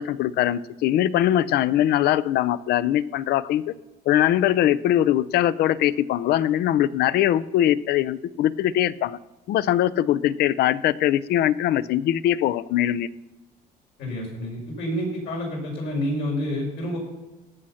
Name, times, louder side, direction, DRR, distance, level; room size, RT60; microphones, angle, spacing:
voice 1, 0.0-3.6 4.1-9.2 9.5-13.1, left 12 dB, 70° left, 18 dB, 0.5 m, -22 dB
voice 2, 14.0-17.0, equal, 85° left, -2 dB, 5.2 m, -28 dB
17.5 x 6.4 x 5.7 m, 1.1 s
cardioid pair, 110°, 17 cm